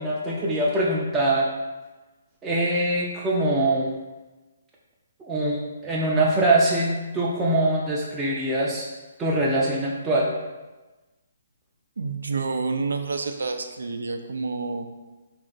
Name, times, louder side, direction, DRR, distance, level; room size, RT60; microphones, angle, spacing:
voice 1, 0.0-1.5 2.4-3.9 5.3-8.9 9.2-10.3, right 1 dB, 10° right, -5 dB, 0.4 m, -23 dB
voice 2, 12.0-14.9, right 4 dB, 85° right, 6 dB, 0.4 m, -28 dB
3.3 x 2.4 x 3.9 m, 1.2 s
hypercardioid pair, 155°, 0 cm